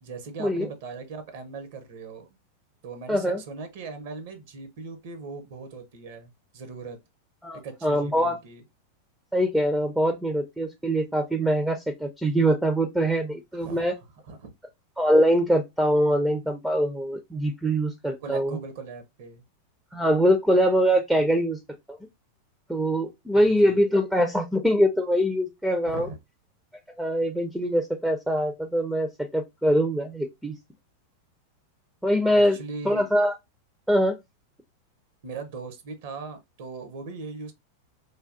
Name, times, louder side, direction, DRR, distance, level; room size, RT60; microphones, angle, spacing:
voice 1, 0.0-2.3 2.8-7.0 7.6-8.6 13.5-13.9 14.2-14.5 18.2-19.4 23.4-23.8 25.9-26.2 32.5-33.1 35.2-37.5, right 4 dB, 50° right, 0.6 m, -39 dB
voice 2, 3.1-3.4 7.4-8.4 9.3-13.9 15.0-18.6 19.9-21.6 21.9-22.0 22.7-26.1 27.0-30.5 32.0-32.6 32.8-33.3 33.9-34.2, equal, 5° right, 0.4 m, -23 dB
3.2 x 2.2 x 2.4 m
figure-of-eight pair, 90°, 0 cm